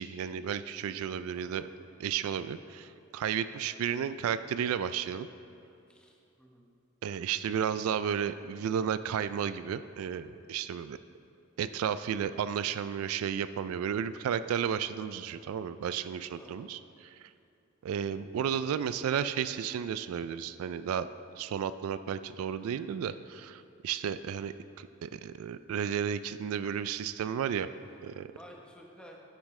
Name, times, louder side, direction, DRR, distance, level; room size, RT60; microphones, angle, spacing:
voice 1, 0.0-1.7 2.0-5.3 7.0-11.0 11.6-17.2 17.8-21.1 21.4-27.7 28.0-28.3, right 8 dB, 80° right, 16 dB, 0.3 m, -33 dB
voice 2, 1.3-1.7 5.9-6.7 16.4-16.7 28.3-29.2, equal, 5° left, -1 dB, 0.9 m, -53 dB
9.7 x 8.9 x 3.2 m, 2.7 s
head